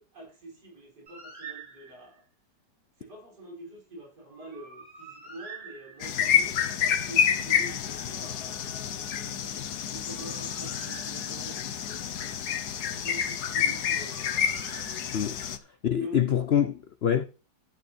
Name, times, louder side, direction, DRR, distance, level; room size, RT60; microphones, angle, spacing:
voice 1, 0.0-2.2 3.0-12.5 12.9-14.3 16.0-16.1, right 2 dB, 65° right, 5.6 m, -46 dB
Bird, 1.1-2.2 4.3-6.4 9.8-11.7 13.6-15.5, right 4 dB, 40° right, 6.1 m, -47 dB
sound 1, 6.0-15.6, left 8 dB, 65° left, 1.4 m, -29 dB
voice 2, 15.8-17.2, left 9 dB, 90° left, 0.5 m, -25 dB
11.5 x 6.7 x 4.4 m
omnidirectional pair, 1.9 m